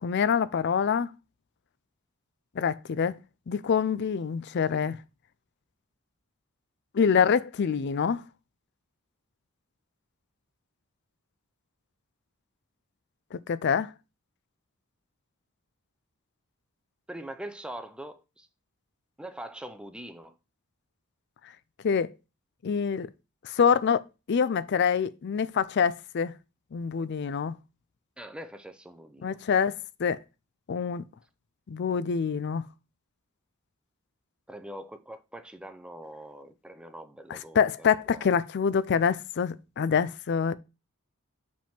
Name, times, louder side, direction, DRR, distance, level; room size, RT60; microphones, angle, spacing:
voice 1, 0.0-1.1 2.6-3.2 3.5-5.0 6.9-8.2 13.3-13.9 21.8-22.1 22.6-23.1 23.4-24.0 24.3-26.3 26.7-27.5 29.2-29.7 30.0-30.2 30.7-31.0 31.7-32.7 37.3-40.5, left 6 dB, 50° left, 0.4 m, -25 dB
voice 2, 17.1-18.5 19.2-20.4 28.2-29.4 34.5-38.3, right 1 dB, 5° right, 0.5 m, -43 dB
5.2 x 3.6 x 5.7 m
head